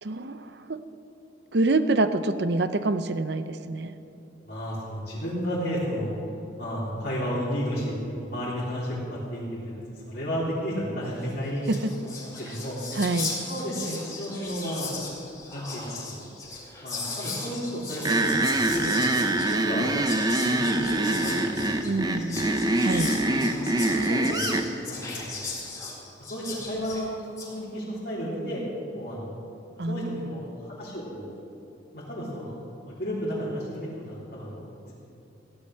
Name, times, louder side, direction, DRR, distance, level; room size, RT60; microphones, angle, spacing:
voice 1, 0.0-0.8 1.5-4.0 11.7-11.9 12.9-13.3 21.8-22.5 22.8-23.1 29.8-30.4, right 2 dB, 60° right, 11 dB, 0.7 m, -26 dB
voice 2, 4.4-6.2 6.6-11.8 12.0-13.0 13.5-14.9 15.5-16.3 16.8-19.9 20.3-22.5 23.3-24.5 24.9-25.6 26.3-27.1 27.5-28.6 28.9-29.3 29.9-31.3 31.9-32.6 32.8-34.9, equal, 50° left, -10 dB, 3.6 m, -33 dB
Whispering, 11.3-11.4 11.6-27.5, left 3 dB, 20° left, 3.8 m, -37 dB
sound 1, 18.1-24.7, right 2 dB, 20° right, 0.7 m, -24 dB
16.5 x 10.5 x 6.6 m, 3.0 s
head